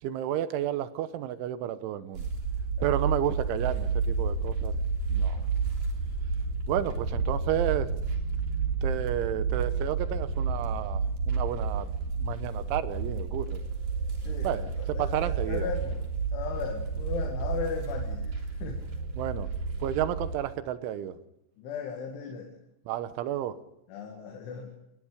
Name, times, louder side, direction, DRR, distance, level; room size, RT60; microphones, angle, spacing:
voice 1, 0.0-2.3 2.8-4.8 5.1-5.4 6.7-8.0 8.8-11.9 12.2-13.6 14.4-15.7 19.1-19.5 19.8-21.2 22.9-23.6, right 12 dB, 85° right, 12 dB, 3.5 m, -31 dB
sound 1, 2.1-20.3, right 4 dB, 45° right, 4.6 m, -30 dB
voice 2, 14.2-14.7 15.0-16.1 16.3-18.8 21.6-22.5 23.9-24.7, left 6 dB, 80° left, 1 dB, 4.6 m, -37 dB
27.0 x 20.0 x 5.1 m, 0.83 s
omnidirectional pair, 5.4 m